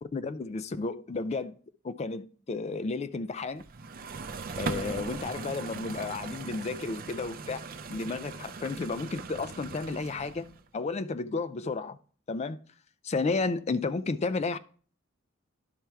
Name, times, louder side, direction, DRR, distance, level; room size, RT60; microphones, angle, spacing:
voice 1, 0.0-1.5 1.8-3.6 4.6-7.6 7.9-12.0 12.3-12.6 13.0-14.6, left 3 dB, 30° left, 0.4 m, -32 dB
sound 1, 3.6-10.6, right 4 dB, 45° right, 0.5 m, -39 dB
11.5 x 4.4 x 3.4 m
head